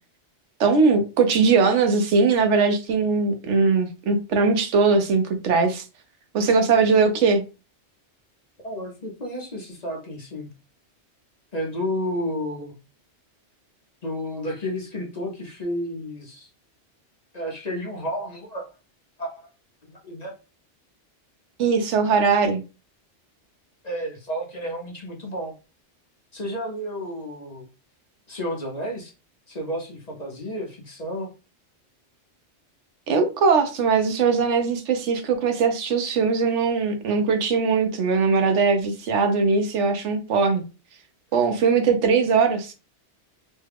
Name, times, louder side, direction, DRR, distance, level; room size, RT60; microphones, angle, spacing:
voice 1, 0.6-5.8 6.3-7.4 21.6-22.6 33.1-40.6 41.3-42.7, right 4 dB, 80° right, 1.0 m, -20 dB
voice 2, 8.6-10.5 11.5-12.8 14.0-16.5 17.3-18.7 19.2-19.4 19.8-20.3 23.8-25.5 26.3-27.7 28.3-29.1 29.5-31.3, equal, 40° left, 0.8 m, -31 dB
3.2 x 2.3 x 3.4 m
omnidirectional pair, 1.2 m